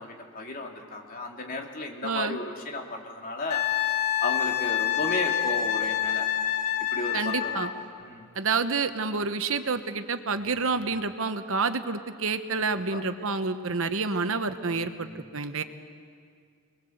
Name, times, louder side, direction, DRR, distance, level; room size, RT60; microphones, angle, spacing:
voice 1, 0.0-3.6 4.2-6.3 6.9-7.7 8.0-8.3 12.9-13.0 14.7-15.1, left 2 dB, 40° left, 1 dB, 2.9 m, -34 dB
voice 2, 2.0-2.4 7.1-7.7 8.3-15.6, right 4 dB, 65° right, 9 dB, 1.1 m, -28 dB
Wind instrument woodwind instrument, 3.5-7.7 10.4-10.6, left 10 dB, 80° left, 2.2 m, -27 dB
28.0 x 21.5 x 7.9 m, 2.3 s
head